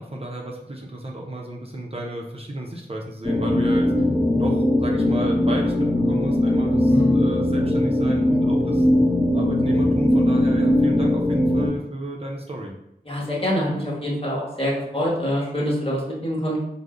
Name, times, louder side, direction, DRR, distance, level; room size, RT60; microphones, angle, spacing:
voice 1, 0.0-4.1 4.4-8.9 9.3-12.7, right 1 dB, 35° right, -1 dB, 0.5 m, -32 dB
sound 1, 3.2-11.7, left 1 dB, 5° left, 0.7 m, -20 dB
voice 2, 6.9-7.2 13.0-16.6, equal, 35° left, -5 dB, 1.2 m, -25 dB
3.6 x 2.0 x 3.6 m, 0.81 s
wide cardioid pair, 50°, 17 cm